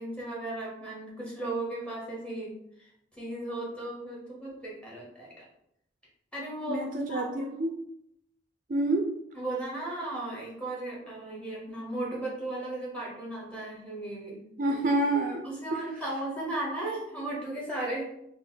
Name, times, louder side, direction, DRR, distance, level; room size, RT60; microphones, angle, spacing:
voice 1, 0.0-5.4 6.3-7.5 9.3-14.4 15.6-18.0, right 2 dB, 5° left, -5 dB, 1.0 m, -36 dB
voice 2, 6.7-7.8 8.7-9.2 14.6-15.4 15.7-15.8, right 2 dB, 45° right, 2 dB, 0.4 m, -28 dB
3.7 x 2.0 x 3.9 m, 0.75 s
head